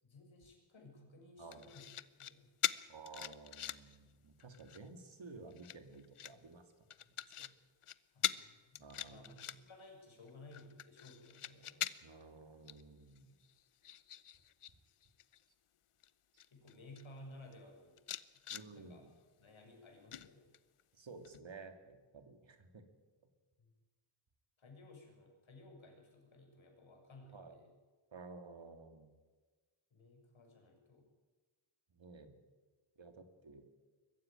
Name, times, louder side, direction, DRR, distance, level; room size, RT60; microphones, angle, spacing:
voice 1, 0.0-1.9 2.2-2.5 8.1-11.9 16.5-18.0 18.7-19.0 19.4-20.5 23.6-23.7 24.6-27.7 29.9-31.1, left 2 dB, 70° left, 2 dB, 6.4 m, -57 dB
voice 2, 1.4-1.7 2.9-6.9 7.4-7.5 8.8-9.6 12.0-13.3 16.3-16.4 18.5-19.1 20.9-22.8 27.3-27.6 28.1-29.1 31.9-32.4 33.0-33.6, right 4 dB, 65° right, 7 dB, 2.6 m, -54 dB
sound 1, 1.5-2.3 2.6-4.0 4.4-4.9 5.5-6.3 6.9-7.5 7.8-7.9 8.2-8.4 8.7-9.8 10.3-12.2 12.7-12.8 13.2-14.7 15.0-15.4 16.0-16.1 16.4-17.0 17.5-17.6 18.0-18.7 20.1-20.8 21.2-21.4, left 10 dB, 90° left, 0.9 m, -42 dB
22.5 x 15.0 x 9.1 m, 1.3 s
wide cardioid pair, 110°, 49 cm